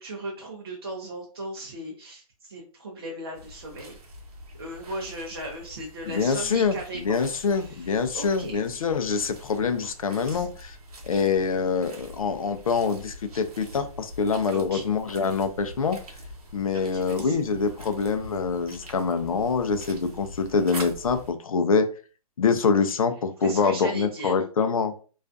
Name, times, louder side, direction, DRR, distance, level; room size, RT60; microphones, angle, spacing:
voice 1, 0.0-4.0 4.6-7.2 7.5-8.6 10.2-10.5 14.5-14.8 16.7-17.4 23.4-24.4, right 1 dB, 40° right, -2 dB, 0.5 m, -37 dB
sound 1, 3.3-21.3, equal, 75° right, 0.9 m, -44 dB
voice 2, 6.1-6.8 7.0-10.8 11.1-16.0 16.5-21.9 22.4-25.0, left 5 dB, 65° left, 8 dB, 0.4 m, -25 dB
2.4 x 2.3 x 2.4 m, 0.38 s
hypercardioid pair, 180°, 19 cm